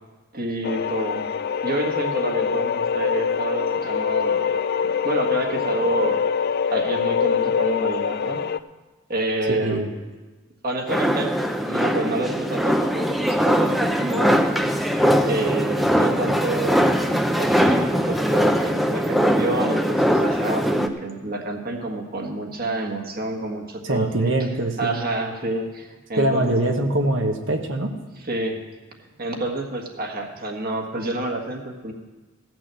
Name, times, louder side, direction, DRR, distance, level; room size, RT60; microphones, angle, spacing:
voice 1, 0.3-1.3 1.6-4.5 4.8-6.2 6.7-8.4 9.1-9.8 10.6-11.3 11.6-14.4 15.2-17.1 17.3-24.5 24.8-26.7 28.3-28.6 29.0-31.9, right 2 dB, 50° right, 2 dB, 1.6 m, -28 dB
sound 1, 0.6-8.6, left 7 dB, 50° left, 0.4 m, -24 dB
voice 2, 9.5-9.9 23.8-24.9 26.2-27.9, right 2 dB, 70° right, 4 dB, 1.2 m, -23 dB
sound 2, 10.9-20.9, equal, ahead, 0.6 m, -21 dB
15.5 x 6.2 x 7.5 m, 1.2 s
head